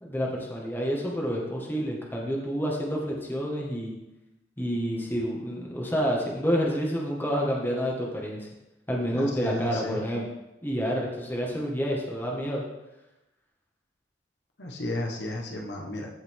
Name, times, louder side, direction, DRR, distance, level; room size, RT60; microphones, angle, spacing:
voice 1, 0.0-3.9 4.6-8.5 8.9-10.3 10.6-12.6, equal, 10° left, -2 dB, 1.9 m, -29 dB
voice 2, 9.1-10.0 14.6-16.1, left 1 dB, 75° left, 0 dB, 1.5 m, -33 dB
15.5 x 5.7 x 3.8 m, 0.95 s
head